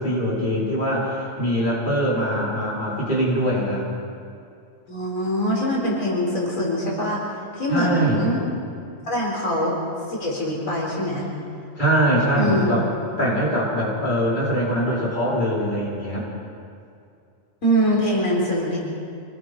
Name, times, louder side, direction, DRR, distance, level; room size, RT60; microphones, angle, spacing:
voice 1, 0.0-3.8 7.7-8.3 11.8-12.9 13.2-16.2, equal, 35° left, -7 dB, 5.3 m, -22 dB
voice 2, 4.9-7.2 7.5-8.4 9.0-9.7 10.1-11.3 12.3-12.7 17.6-18.8, equal, 85° left, -4 dB, 4.7 m, -23 dB
26.0 x 19.5 x 5.4 m, 2.4 s
omnidirectional pair, 1.4 m